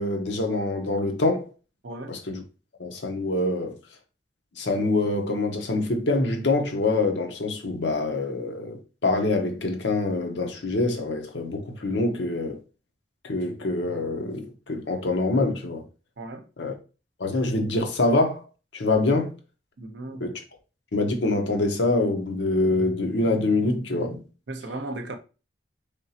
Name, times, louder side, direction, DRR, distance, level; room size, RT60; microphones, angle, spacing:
voice 1, 0.0-1.5 2.1-2.4 2.8-3.8 4.6-12.6 13.2-15.8 16.6-16.7 17.2-18.4 18.7-19.3 20.2-20.4 20.9-24.2, left 2 dB, 80° left, 0.9 m, -25 dB
voice 2, 1.8-2.2 16.2-16.5 19.8-20.2 24.5-25.2, right 2 dB, 75° right, 0.7 m, -35 dB
3.8 x 3.6 x 2.8 m
head